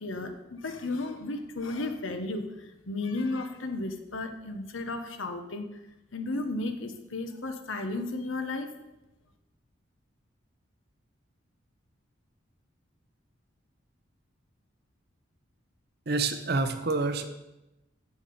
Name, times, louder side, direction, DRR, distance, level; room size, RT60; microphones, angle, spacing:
voice 1, 0.0-5.8 6.1-8.7, left 2 dB, 75° left, 7 dB, 1.1 m, -34 dB
voice 2, 16.1-17.3, right 3 dB, 50° right, 8 dB, 0.8 m, -27 dB
7.8 x 7.0 x 7.0 m, 0.97 s
head